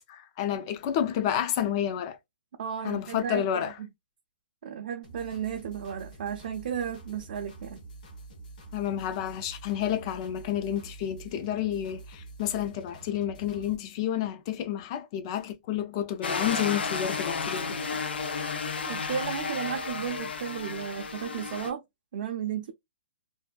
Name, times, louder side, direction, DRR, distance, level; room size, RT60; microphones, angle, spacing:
voice 1, 0.0-2.2 2.8-3.7 8.7-18.0, left 10 dB, 30° left, 0.3 m, -30 dB
voice 2, 2.6-3.9 4.6-7.8 18.8-21.8 22.1-22.7, right 8 dB, 55° right, 0.4 m, -34 dB
sound 1, 5.0-13.8, right 3 dB, 50° left, 0.9 m, -47 dB
sound 2, 16.2-21.7, left 5 dB, 85° left, 0.6 m, -32 dB
2.6 x 2.1 x 2.2 m
hypercardioid pair, 160°, 5 cm